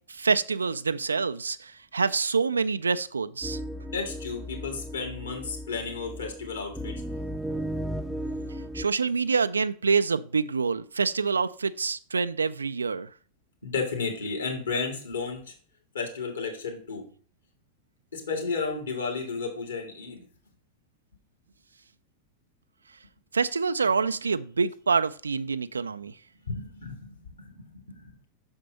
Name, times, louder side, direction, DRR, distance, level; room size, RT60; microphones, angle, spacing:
voice 1, 0.1-3.6 8.7-13.1 23.3-26.1, right 5 dB, 75° right, 13 dB, 0.3 m, -26 dB
sound 1, 3.4-8.9, equal, 5° right, 0.5 m, -35 dB
voice 2, 3.9-7.0 13.6-15.5 15.9-17.1 18.1-20.3 26.4-28.3, left 4 dB, 70° left, 1 dB, 2.4 m, -33 dB
6.7 x 4.4 x 5.1 m, 0.43 s
figure-of-eight pair, 90°, 0 cm